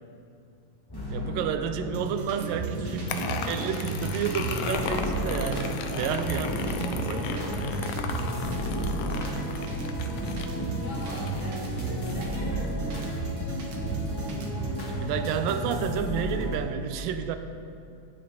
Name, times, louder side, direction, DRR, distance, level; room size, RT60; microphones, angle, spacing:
sound 1, 0.9-16.6, equal, 15° left, 0.9 m, -34 dB
voice 1, 1.1-3.2 3.5-7.3 14.9-17.4, right 8 dB, 90° right, 9 dB, 2.3 m, -31 dB
sound 2, 1.9-14.8, right 4 dB, 60° right, 1.4 m, -35 dB
sound 3, 3.1-12.3, left 6 dB, 75° left, 1.8 m, -36 dB
voice 2, 10.8-13.0, equal, 50° left, -6 dB, 3.4 m, -43 dB
14.5 x 9.5 x 3.8 m, 2.5 s
omnidirectional pair, 3.9 m